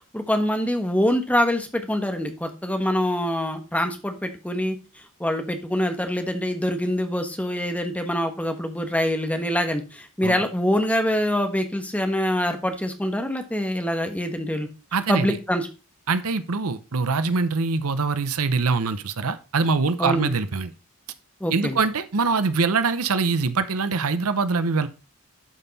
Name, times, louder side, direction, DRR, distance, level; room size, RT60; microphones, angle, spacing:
voice 1, 0.1-4.8 5.2-14.7 15.1-15.7 20.0-20.3 21.4-21.8, equal, 5° left, 6 dB, 1.3 m, -25 dB
voice 2, 14.9-15.4 16.1-20.7 21.5-24.9, right 4 dB, 70° right, 12 dB, 0.8 m, -23 dB
11.0 x 5.6 x 4.1 m, 0.31 s
head